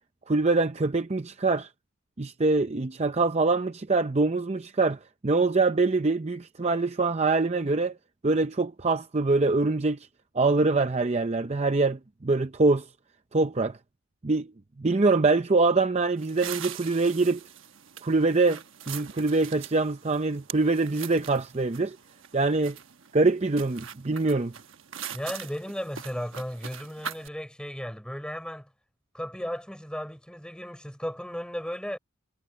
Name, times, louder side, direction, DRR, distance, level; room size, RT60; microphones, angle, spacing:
voice 1, 0.3-1.7 2.2-7.9 8.2-10.0 10.3-12.8 13.3-13.8 14.2-14.5 14.8-17.4 18.0-22.0 22.3-22.8 23.1-24.5, right 3 dB, 30° right, 0.6 m, -24 dB
sound 1, 16.2-27.3, right 8 dB, 60° right, 1.2 m, -42 dB
voice 2, 25.1-28.7 29.1-32.0, equal, 5° left, 3.7 m, -35 dB
head